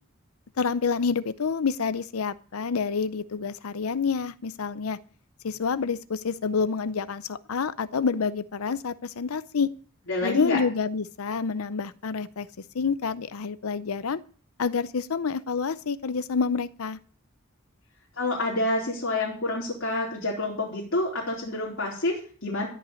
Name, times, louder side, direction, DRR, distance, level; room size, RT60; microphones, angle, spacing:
voice 1, 0.6-5.0 5.4-9.7 10.2-12.5 12.7-14.2 14.6-17.0, left 5 dB, 85° left, 15 dB, 0.6 m, -28 dB
voice 2, 10.1-10.6 18.2-22.7, left 2 dB, 60° left, -3 dB, 3.9 m, -28 dB
14.5 x 5.9 x 9.0 m, 0.43 s
head